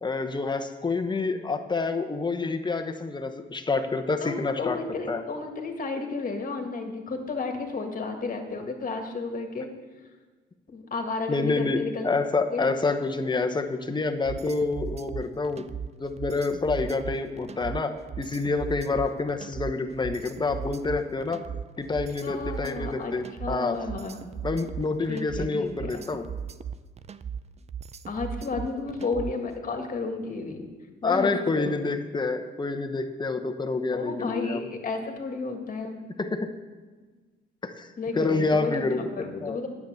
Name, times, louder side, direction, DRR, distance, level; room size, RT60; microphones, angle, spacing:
voice 1, 0.0-4.8 5.1-5.2 11.3-15.7 16.0-21.4 21.8-23.8 24.4-26.3 31.0-34.6 36.2-36.5 37.6-37.9 38.1-39.0 39.4-39.6, left 3 dB, 20° left, 6 dB, 1.0 m, -28 dB
voice 2, 4.2-9.7 10.7-12.1 12.5-12.7 22.2-23.1 23.4-24.2 25.1-26.0 28.1-30.7 31.0-31.8 33.9-36.0 38.0-39.7, left 3 dB, 45° left, 4 dB, 1.9 m, -32 dB
sound 1, 14.2-29.5, right 7 dB, 35° right, 0.5 m, -37 dB
9.6 x 7.1 x 7.9 m, 1.4 s
cardioid pair, 90°, 20 cm